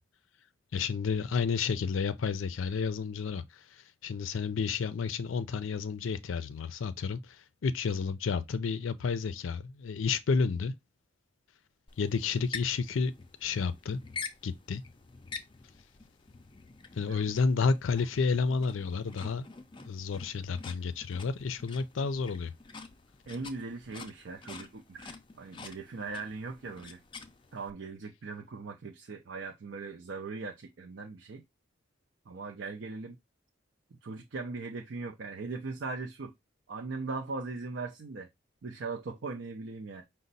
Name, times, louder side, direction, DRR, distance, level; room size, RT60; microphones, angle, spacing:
voice 1, 0.7-10.7 12.0-13.1 13.4-14.0 14.4-14.8 17.0-19.5 19.8-22.5, left 5 dB, 80° left, 0.4 m, -31 dB
sound 1, 11.9-27.7, left 5 dB, 25° left, 0.4 m, -47 dB
voice 2, 23.3-27.0 27.5-31.4 32.3-33.2 33.9-36.3 36.7-38.3 38.6-40.0, right 3 dB, 65° right, 0.5 m, -39 dB
5.2 x 2.1 x 3.9 m
head